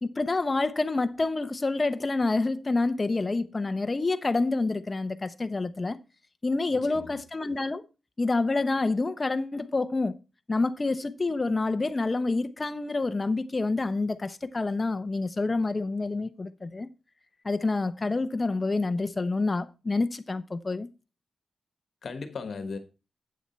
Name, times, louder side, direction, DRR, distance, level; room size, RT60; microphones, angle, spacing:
voice 1, 0.0-6.0 6.4-7.8 8.2-10.2 10.5-16.9 17.4-20.9, left 3 dB, 30° left, 0.8 m, -28 dB
voice 2, 6.7-7.2 22.0-22.8, left 4 dB, 60° left, 1.3 m, -37 dB
8.7 x 7.2 x 4.4 m
wide cardioid pair, 110°, 0 cm